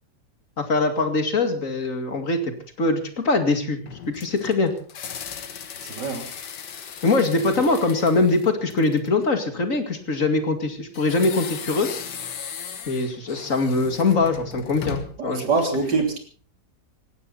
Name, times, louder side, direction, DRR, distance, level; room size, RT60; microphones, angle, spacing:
voice 1, 0.6-2.5 2.8-3.8 4.1-4.7 7.0-11.9 12.9-15.5, left 3 dB, 50° left, 6 dB, 2.7 m, -22 dB
sound 1, 3.9-9.2 10.9-15.3, left 7 dB, 80° left, 2.0 m, -37 dB
voice 2, 5.8-6.3 15.2-16.2, right 4 dB, 80° right, 4 dB, 3.8 m, -24 dB
19.5 x 17.0 x 4.1 m, 0.42 s
omnidirectional pair, 1.8 m